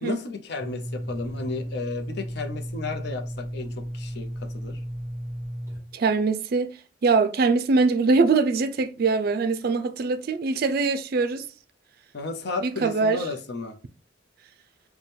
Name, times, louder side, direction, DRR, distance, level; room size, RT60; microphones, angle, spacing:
voice 1, 0.0-4.8 12.1-13.8, left 3 dB, 60° left, 0.6 m, -33 dB
sound 1, 0.6-5.8, equal, 15° right, 0.9 m, -34 dB
voice 2, 5.9-6.7 7.0-11.4 12.6-13.2, right 4 dB, 55° right, 0.4 m, -22 dB
4.2 x 2.2 x 3.3 m
head